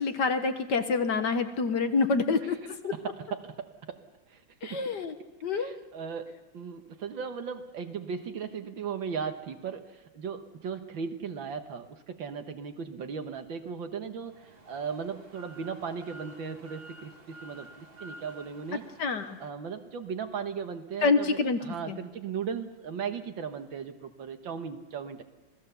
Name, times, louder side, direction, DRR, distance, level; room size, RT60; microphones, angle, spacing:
voice 1, 0.0-2.9 4.6-5.1 5.4-5.8 19.0-19.4 21.0-21.6 21.9-22.0, left 4 dB, 55° left, 8 dB, 1.7 m, -27 dB
voice 2, 2.9-4.8 5.2-18.8 19.4-25.2, right 6 dB, 65° right, 8 dB, 2.0 m, -37 dB
sound 1, 14.3-19.5, right 1 dB, 25° right, 2.1 m, -51 dB
27.0 x 18.5 x 6.9 m, 1.1 s
omnidirectional pair, 2.4 m